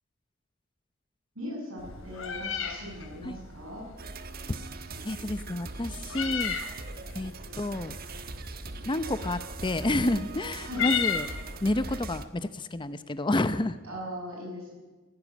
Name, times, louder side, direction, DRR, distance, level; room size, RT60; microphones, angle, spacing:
voice 1, 1.3-3.8 10.7-10.8 13.8-14.8, equal, 90° right, -2 dB, 7.9 m, -39 dB
Meow, 1.8-11.9, left 7 dB, 75° left, 3.5 m, -36 dB
sound 1, 4.0-12.2, right 3 dB, 45° right, 1.3 m, -41 dB
voice 2, 5.0-6.6 7.1-7.9 8.8-11.3 11.6-13.8, left 1 dB, 25° left, 12 dB, 0.7 m, -29 dB
17.5 x 15.5 x 9.6 m, 1.2 s
head